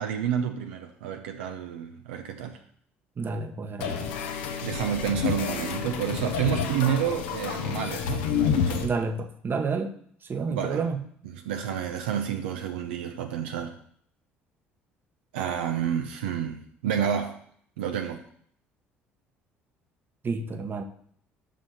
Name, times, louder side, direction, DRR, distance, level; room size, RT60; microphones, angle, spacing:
voice 1, 0.0-2.6 4.6-8.8 10.5-10.8 11.5-13.8 15.3-17.4 17.8-18.2, right 9 dB, 80° right, 5 dB, 0.6 m, -29 dB
voice 2, 3.2-4.1 8.8-9.9 10.2-11.0 20.2-20.8, right 4 dB, 35° right, 7 dB, 1.0 m, -30 dB
sound 1, 3.8-8.9, left 7 dB, 75° left, 0.8 m, -29 dB
5.7 x 5.1 x 6.5 m, 0.63 s
hypercardioid pair, 60°, 6 cm